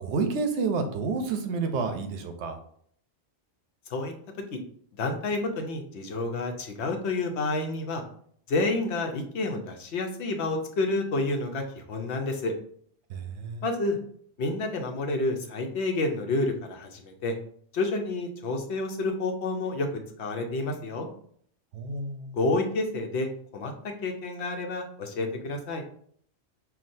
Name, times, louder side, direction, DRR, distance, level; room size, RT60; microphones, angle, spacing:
voice 1, 0.0-2.6 13.1-13.6 21.7-22.3, right 4 dB, 85° right, 6 dB, 0.9 m, -29 dB
voice 2, 5.0-8.0 8.5-12.5 13.6-14.0 14.4-17.3 17.7-19.9 20.2-21.1 22.3-25.8, left 2 dB, 75° left, 4 dB, 1.0 m, -29 dB
5.8 x 2.3 x 2.6 m, 0.62 s
omnidirectional pair, 1.1 m